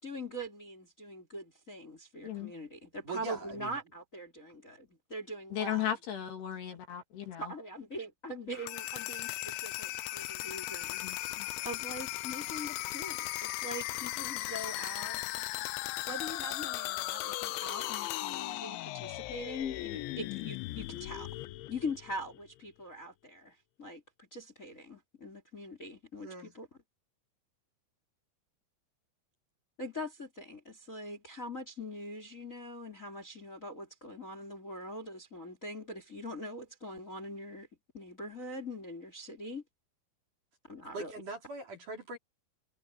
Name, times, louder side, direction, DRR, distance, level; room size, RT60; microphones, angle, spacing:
voice 1, 0.0-5.9 7.4-11.2 11.6-15.5 16.1-21.3 21.7-26.7 29.8-37.7 37.9-39.6 40.7-41.1, left 1 dB, 15° left, 3.6 m, -42 dB
voice 2, 3.0-3.8 26.2-26.5 40.9-42.2, right 3 dB, 40° right, 6.0 m, -41 dB
voice 3, 5.5-7.5 11.0-11.5, left 10 dB, 60° left, 4.5 m, -36 dB
sound 1, 8.5-22.4, left 17 dB, 80° left, 2.9 m, -37 dB
omnidirectional pair, 5.7 m